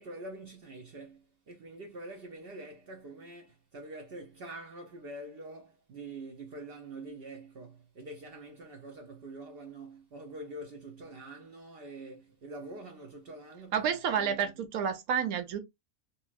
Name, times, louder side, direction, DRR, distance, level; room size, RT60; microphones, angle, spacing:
voice 1, 0.0-14.5, right 2 dB, 60° right, 0.6 m, -45 dB
voice 2, 13.7-15.6, right 7 dB, 85° right, 1.2 m, -30 dB
2.9 x 2.8 x 2.4 m
omnidirectional pair, 1.5 m